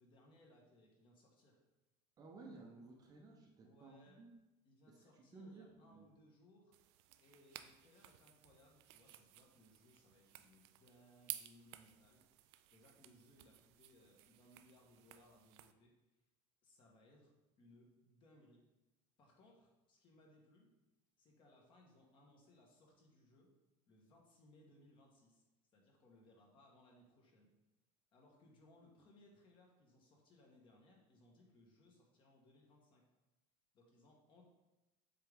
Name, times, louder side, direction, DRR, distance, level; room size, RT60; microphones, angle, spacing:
voice 1, 0.0-1.6 3.6-4.2 4.6-6.7 7.2-12.4 12.7-15.9 16.6-18.7 19.2-20.7 21.2-23.5 23.9-25.4 25.7-27.5 28.1-33.0 33.7-34.5, left 1 dB, 35° left, -1 dB, 1.4 m, -67 dB
voice 2, 2.2-4.3 4.9-6.1, right 3 dB, 25° right, 1 dB, 0.7 m, -57 dB
sound 1, 6.7-15.7, right 14 dB, 90° right, 0.4 m, -55 dB
7.5 x 3.7 x 3.6 m, 1.0 s
cardioid pair, 155°, 14 cm